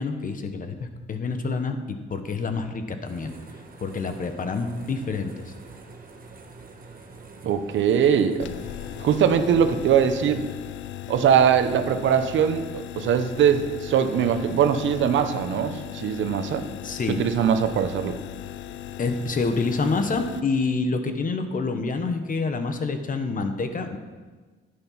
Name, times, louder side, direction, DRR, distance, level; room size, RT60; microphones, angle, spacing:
voice 1, 0.0-3.3 3.8-5.3 16.8-17.2 19.0-24.0, left 4 dB, 45° left, 7 dB, 1.3 m, -27 dB
sound 1, 3.0-9.2, right 3 dB, 45° right, 1.9 m, -45 dB
voice 2, 7.4-8.5 9.0-10.4 11.1-16.6 17.1-18.2, right 8 dB, 75° right, 9 dB, 1.0 m, -21 dB
sound 2, 8.4-20.4, left 12 dB, 70° left, 0.6 m, -37 dB
10.5 x 9.1 x 5.9 m, 1.4 s
cardioid pair, 90°, 20 cm